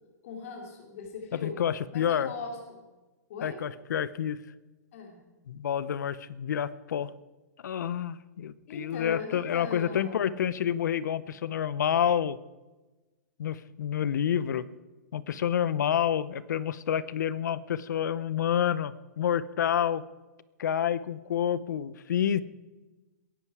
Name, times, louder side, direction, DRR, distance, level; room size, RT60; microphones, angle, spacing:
voice 1, 0.2-1.6 1.9-2.8 3.3-3.6 4.9-5.2 8.7-10.5, left 4 dB, 50° left, 1 dB, 3.0 m, -40 dB
voice 2, 1.3-2.3 3.4-4.4 5.5-7.1 7.6-12.4 13.4-14.7 15.1-20.0 20.6-22.4, left 9 dB, 80° left, 18 dB, 0.8 m, -28 dB
21.5 x 11.5 x 4.8 m, 1.2 s
hypercardioid pair, 160°, 10 cm